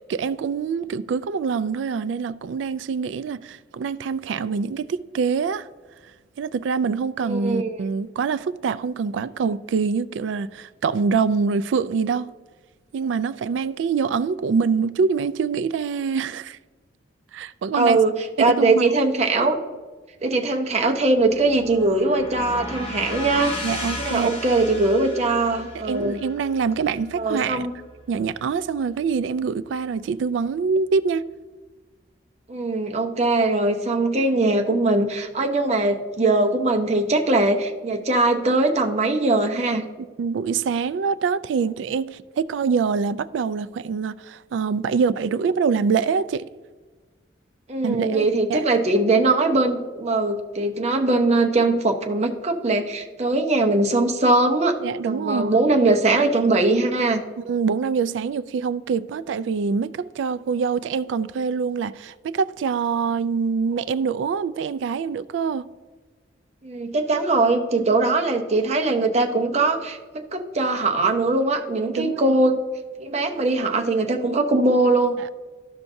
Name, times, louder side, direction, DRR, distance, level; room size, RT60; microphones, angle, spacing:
voice 1, 0.1-5.7 6.4-12.3 12.9-16.6 17.3-18.0 18.4-18.9 22.7-22.9 23.6-24.4 25.7-27.7 28.1-31.3 40.2-46.5 47.8-48.6 54.8-55.6 57.4-65.7 67.8-68.0 71.9-72.4 75.2-75.4, right 5 dB, 80° right, 0.3 m, -25 dB
voice 2, 7.2-7.9 17.8-19.6 20.2-23.5 24.0-26.2 27.2-27.7 32.5-39.8 47.7-54.7 55.0-57.2 66.6-72.6 73.0-75.2, right 2 dB, 35° right, 0.8 m, -21 dB
sound 1, 20.7-29.0, left 1 dB, 30° left, 1.3 m, -36 dB
13.5 x 5.7 x 2.7 m
head